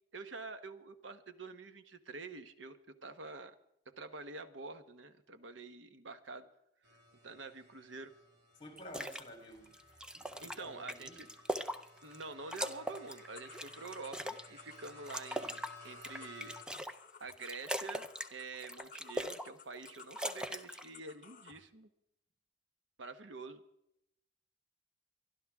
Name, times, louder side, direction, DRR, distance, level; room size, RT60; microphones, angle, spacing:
voice 1, 0.1-3.5 3.9-6.5 7.2-8.1 10.4-11.3 12.0-16.6 17.2-21.9 23.0-23.6, right 3 dB, 90° right, 1.1 m, -47 dB
sound 1, 6.8-16.6, left 2 dB, 60° right, 2.9 m, -57 dB
voice 2, 8.6-9.7 10.1-11.3, equal, 25° left, 3.8 m, -51 dB
sound 2, 8.8-9.2 9.6-12.2 12.5-14.5 14.8-17.0 17.3-18.3 18.6-19.5 19.7-20.9, equal, 5° right, 0.7 m, -40 dB
sound 3, 12.9-21.6, left 6 dB, 45° left, 1.1 m, -57 dB
23.5 x 12.0 x 3.6 m
head